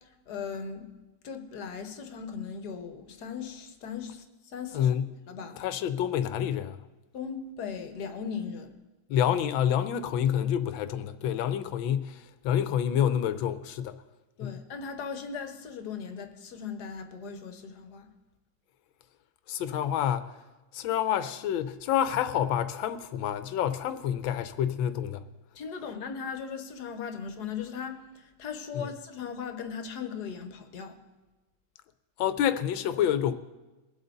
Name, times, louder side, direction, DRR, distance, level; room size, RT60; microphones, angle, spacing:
voice 1, 0.3-0.9 1.2-4.2 4.5-4.9 5.3-5.6 7.1-8.8 14.4-18.1 25.5-31.0, left 6 dB, 60° left, 1.5 m, -38 dB
voice 2, 4.7-5.1 5.6-6.8 9.1-14.0 14.4-14.6 19.5-20.4 20.7-25.2 28.7-28.9 32.2-33.3, left 9 dB, 85° left, 1.5 m, -28 dB
22.0 x 8.0 x 3.9 m
omnidirectional pair, 2.1 m